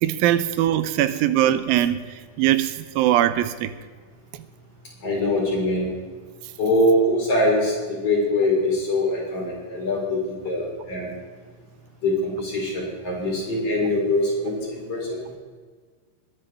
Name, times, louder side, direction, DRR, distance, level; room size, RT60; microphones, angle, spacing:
voice 1, 0.0-2.0 2.4-3.7, right 12 dB, 90° right, 12 dB, 2.5 m, -21 dB
voice 2, 5.0-5.9 6.6-11.1 12.0-15.2, left 1 dB, 40° left, -4 dB, 5.4 m, -23 dB
21.5 x 11.0 x 3.5 m, 1.5 s
omnidirectional pair, 4.1 m